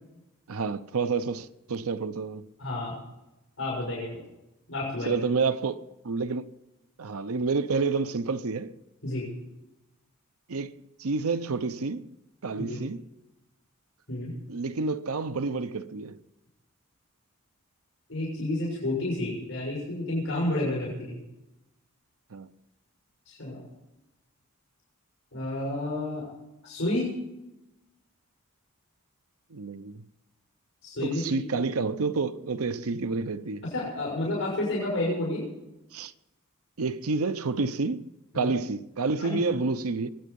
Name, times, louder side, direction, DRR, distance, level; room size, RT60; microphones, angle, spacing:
voice 1, 0.5-2.5 5.0-6.5 7.0-8.8 10.5-12.1 12.4-13.0 14.5-16.2 22.3-22.5 29.5-30.1 31.0-33.7 35.9-36.1 36.8-40.1, right 4 dB, 80° right, 0.7 m, -29 dB
voice 2, 2.6-3.0 3.6-4.2 4.7-5.2 9.0-9.3 12.6-12.8 14.1-14.3 18.1-21.2 23.3-23.6 25.3-26.3 26.6-27.1 30.8-31.4 33.7-35.4 38.3-38.5 39.2-39.4, left 1 dB, 65° left, 6.4 m, -30 dB
23.0 x 9.2 x 5.3 m
head